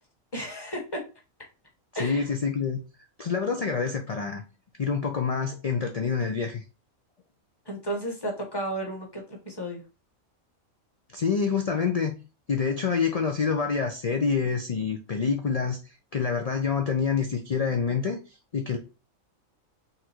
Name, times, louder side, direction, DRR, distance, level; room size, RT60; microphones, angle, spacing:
voice 1, 0.3-1.0 1.9-2.2 7.6-9.8, right 1 dB, 20° left, 1.2 m, -33 dB
voice 2, 2.0-2.8 3.2-4.4 4.8-6.6 11.1-12.2 12.5-18.8, left 5 dB, 70° left, 0.3 m, -27 dB
4.1 x 2.6 x 4.3 m
omnidirectional pair, 1.4 m